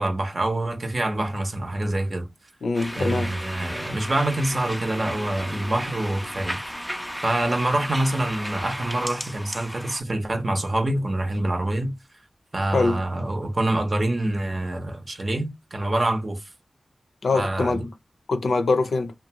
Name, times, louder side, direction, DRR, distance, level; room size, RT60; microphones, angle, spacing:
voice 1, 0.0-2.3 2.9-6.6 7.2-12.0 12.5-16.5 17.3-17.9, right 1 dB, 50° right, 0.7 m, -26 dB
voice 2, 2.6-3.3 12.7-13.0 17.2-17.9 18.3-19.1, left 3 dB, 90° left, 0.5 m, -23 dB
sound 1, 2.7-10.0, equal, ahead, 0.3 m, -34 dB
2.6 x 2.2 x 2.8 m
cardioid pair, 45°, 0 cm